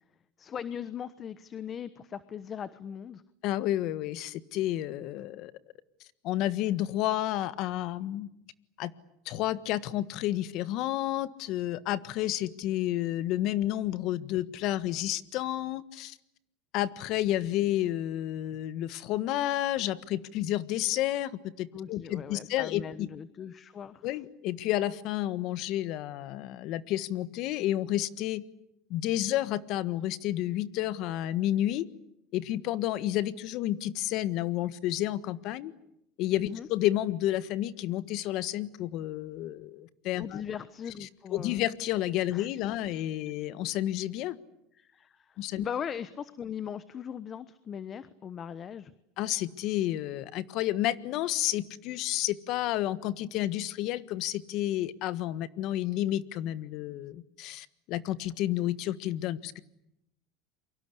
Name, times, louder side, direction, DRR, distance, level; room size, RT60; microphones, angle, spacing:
voice 1, 0.4-3.2 21.7-24.1 36.4-36.7 40.2-41.6 42.3-42.5 44.8-48.9, left 8 dB, 35° left, 14 dB, 1.1 m, -39 dB
voice 2, 3.4-5.5 6.2-8.3 8.8-8.9 9.2-16.2 16.7-23.1 24.0-28.4 28.9-31.9 32.3-35.7 36.2-40.4 41.0-44.4 45.4-45.7 49.2-59.6, left 14 dB, 55° left, 14 dB, 1.5 m, -30 dB
28.5 x 24.0 x 8.4 m, 0.82 s
supercardioid pair, 115°, 0 cm